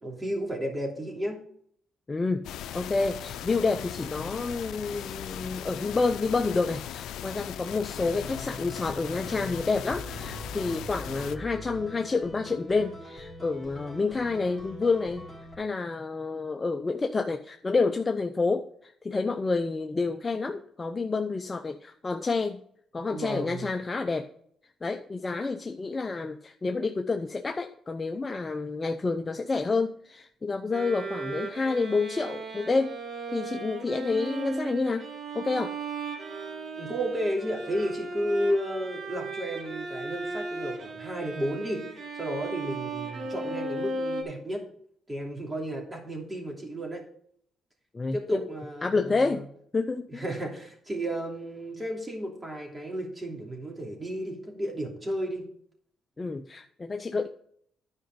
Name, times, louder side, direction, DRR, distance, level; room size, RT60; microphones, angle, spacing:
voice 1, 0.0-1.4 23.1-23.7 36.8-41.8 42.1-44.6 45.1-47.0 48.1-49.5 50.1-55.5, equal, 20° right, 0 dB, 3.0 m, -32 dB
voice 2, 2.1-2.4 2.7-15.3 15.6-22.6 22.9-24.3 24.8-32.9 33.3-35.1 35.3-35.7 47.9-48.4 48.8-49.4 49.7-50.2 56.2-57.3, left 3 dB, 25° left, 6 dB, 0.6 m, -29 dB
sound 1, 2.4-11.4, left 11 dB, 80° left, 0.5 m, -38 dB
sound 2, 8.0-15.5, equal, ahead, 3.7 m, -43 dB
Bowed string instrument, 30.7-44.2, right 3 dB, 55° right, 1.8 m, -36 dB
10.5 x 5.1 x 5.3 m, 0.64 s
cardioid pair, 90°, 0 cm